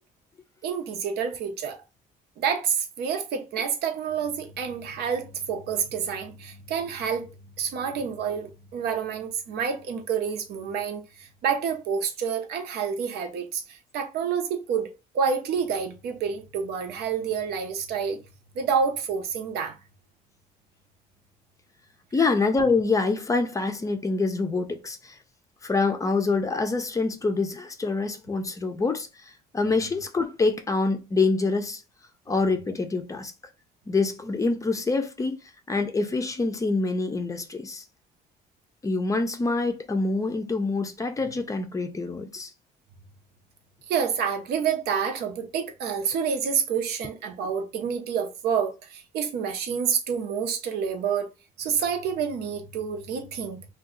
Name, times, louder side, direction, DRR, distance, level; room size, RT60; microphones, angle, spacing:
voice 1, 0.6-1.8 2.4-7.3 7.6-14.9 15.1-18.2 18.5-19.8 22.2-22.3 43.9-51.3 51.6-53.7, right 7 dB, 75° right, 0.7 m, -28 dB
voice 2, 22.1-25.2 25.6-31.8 32.3-33.3 33.9-35.4 35.7-37.8 38.8-42.5, left 3 dB, 20° left, 0.5 m, -26 dB
2.6 x 2.3 x 3.7 m
cardioid pair, 110°, 17 cm